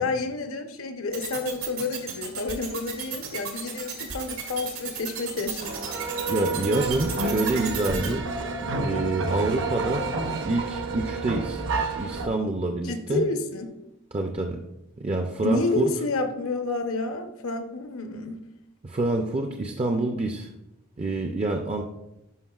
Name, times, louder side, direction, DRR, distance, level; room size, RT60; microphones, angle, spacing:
voice 1, 0.0-5.7 12.8-13.7 15.4-18.4, left 3 dB, 75° left, 6 dB, 0.8 m, -29 dB
sound 1, 1.1-8.1, right 8 dB, 80° right, 1.7 m, -33 dB
sound 2, 5.6-12.3, right 3 dB, 60° right, 0.8 m, -29 dB
voice 2, 6.3-8.3 8.6-10.1 10.5-11.7 12.0-13.3 14.1-14.6 15.0-15.9 18.8-20.5 21.0-21.8, right 2 dB, 30° right, 3 dB, 0.4 m, -27 dB
11.0 x 5.1 x 2.4 m, 0.89 s
head